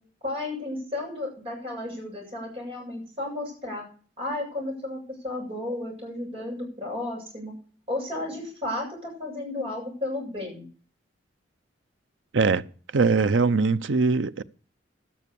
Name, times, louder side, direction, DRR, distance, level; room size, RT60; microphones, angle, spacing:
voice 1, 0.2-3.9 4.2-7.5 7.9-10.6, left 2 dB, 30° right, 7.8 m, -33 dB
voice 2, 12.9-14.4, right 4 dB, 80° right, 0.6 m, -21 dB
12.0 x 9.5 x 6.9 m
head